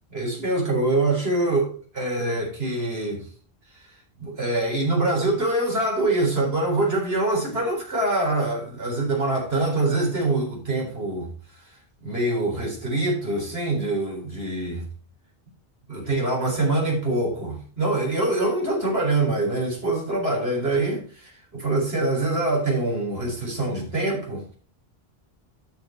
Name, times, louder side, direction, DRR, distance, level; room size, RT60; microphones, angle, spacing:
voice 1, 0.1-3.3 3.7-3.8 4.2-11.3 12.0-14.9 15.9-24.5, right 2 dB, 70° right, 4.5 m, -24 dB
11.5 x 5.7 x 4.4 m
omnidirectional pair, 1.1 m